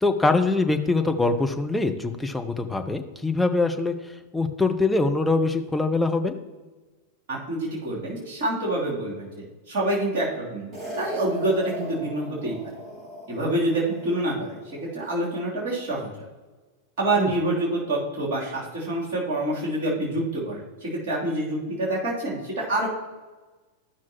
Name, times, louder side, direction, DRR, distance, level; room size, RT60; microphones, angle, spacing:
voice 1, 0.0-3.9 4.3-6.3 17.2-17.3, left 3 dB, 5° left, 5 dB, 0.8 m, -23 dB
voice 2, 7.3-12.5 13.3-16.3 17.0-22.9, right 1 dB, 55° right, -6 dB, 3.2 m, -27 dB
sound 1, 10.7-15.2, right 1 dB, 30° right, 2.6 m, -39 dB
14.5 x 6.0 x 3.0 m, 1.3 s
figure-of-eight pair, 90°, 0 cm